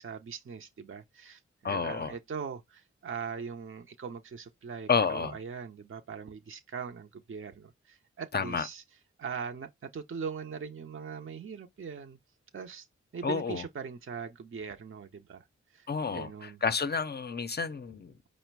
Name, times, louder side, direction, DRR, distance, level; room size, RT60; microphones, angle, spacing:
voice 1, 0.0-8.8 9.2-12.2 12.5-12.9 13.1-15.4 15.7-16.6, right 6 dB, 45° right, 0.7 m, -41 dB
voice 2, 1.6-2.1 4.9-5.4 8.3-8.7 13.2-13.6 15.9-18.1, left 5 dB, 35° left, 0.6 m, -30 dB
4.9 x 2.1 x 4.5 m
cardioid pair, 40°, 29 cm